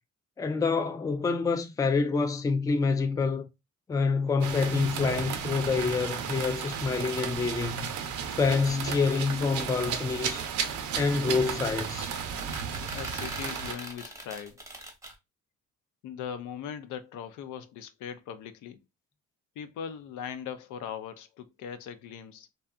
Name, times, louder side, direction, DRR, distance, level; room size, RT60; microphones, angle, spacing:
voice 1, 0.4-3.5 3.9-8.0 8.3-12.1, left 4 dB, 10° left, 0.3 m, -27 dB
sound 1, 4.4-13.7, right 7 dB, 75° right, 0.6 m, -34 dB
sound 2, 11.1-15.1, right 1 dB, 10° right, 0.7 m, -43 dB
voice 2, 12.9-14.6 16.0-18.8 19.6-22.5, left 8 dB, 80° left, 0.5 m, -40 dB
2.7 x 2.3 x 2.2 m
cardioid pair, 90°, 30 cm